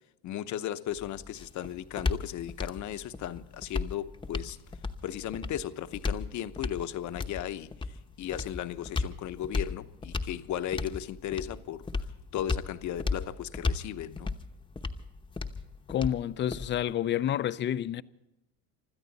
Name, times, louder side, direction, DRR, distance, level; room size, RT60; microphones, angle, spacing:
voice 1, 0.2-4.6 5.0-12.1 12.3-14.3, left 11 dB, 45° left, 0.9 m, -36 dB
sound 1, 0.9-16.9, left 3 dB, 10° left, 0.9 m, -36 dB
voice 2, 15.9-18.0, left 10 dB, 30° left, 0.5 m, -29 dB
25.5 x 13.0 x 4.1 m
supercardioid pair, 115°, 39 cm